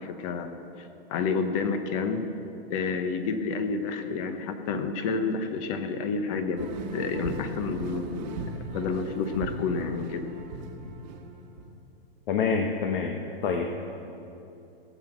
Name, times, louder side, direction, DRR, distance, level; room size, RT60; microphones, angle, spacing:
voice 1, 0.0-2.2 2.7-10.3, left 4 dB, 35° left, 8 dB, 1.0 m, -30 dB
sound 1, 6.6-11.7, right 2 dB, 45° right, 1.3 m, -38 dB
voice 2, 12.3-13.7, left 5 dB, 60° left, 3 dB, 1.2 m, -27 dB
17.5 x 8.1 x 6.1 m, 2.8 s
hypercardioid pair, 155°, 30 cm